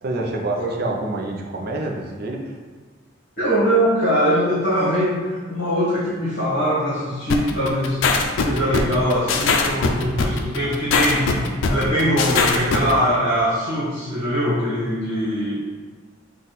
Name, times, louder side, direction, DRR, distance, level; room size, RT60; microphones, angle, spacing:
voice 1, 0.0-2.6, right 2 dB, 55° right, 0 dB, 0.6 m, -27 dB
voice 2, 3.4-8.0 8.4-11.3 11.7-15.6, equal, 55° left, -12 dB, 1.5 m, -22 dB
sound 1, 7.3-12.9, left 4 dB, 90° left, 0.4 m, -20 dB
4.0 x 2.4 x 4.0 m, 1.4 s
head